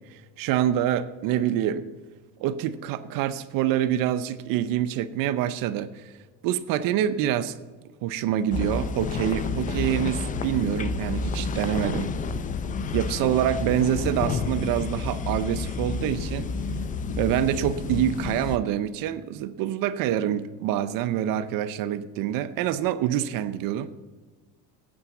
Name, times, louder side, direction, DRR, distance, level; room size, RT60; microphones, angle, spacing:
voice 1, 0.1-1.9 2.4-6.1 6.4-7.6 8.0-12.1 12.9-16.5 17.2-23.9, right 11 dB, 55° right, 13 dB, 0.7 m, -26 dB
sound 1, 8.5-18.6, left 4 dB, 20° left, 0.4 m, -30 dB
8.8 x 8.0 x 7.7 m, 1.3 s
cardioid pair, 130°, 39 cm